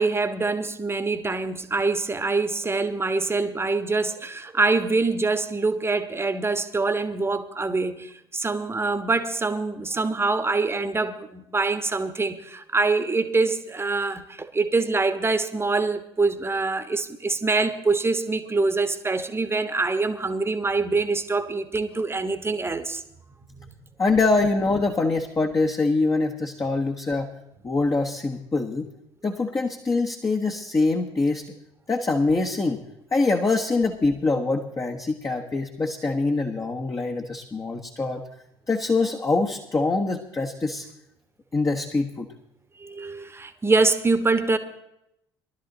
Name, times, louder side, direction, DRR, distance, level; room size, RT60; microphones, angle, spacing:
voice 1, 0.0-23.0 23.5-23.7 42.8-44.6, right 3 dB, 15° right, 1.3 m, -25 dB
voice 2, 24.0-27.3 27.6-28.9 29.2-31.5 31.9-32.8 33.1-38.2 38.7-40.8 41.5-42.3, left 3 dB, 25° left, 1.3 m, -24 dB
19.5 x 12.0 x 3.9 m
figure-of-eight pair, 55°, 14 cm